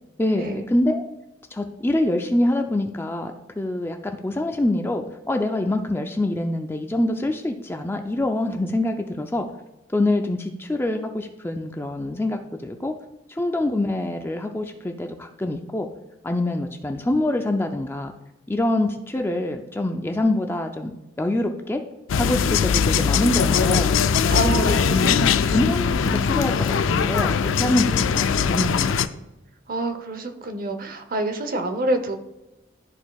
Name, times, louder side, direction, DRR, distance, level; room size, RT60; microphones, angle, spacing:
voice 1, 0.2-1.0 1.5-4.0 4.2-9.4 9.9-12.9 13.3-15.9 16.2-18.1 18.5-20.9 21.2-21.8 22.2-24.2 24.4-29.0, left 1 dB, 10° left, 5 dB, 0.4 m, -25 dB
sound 1, 22.1-29.1, left 6 dB, 75° left, 0.4 m, -21 dB
voice 2, 24.3-25.1 29.7-32.2, right 2 dB, 45° right, 7 dB, 0.7 m, -27 dB
12.5 x 4.5 x 2.3 m, 0.98 s
head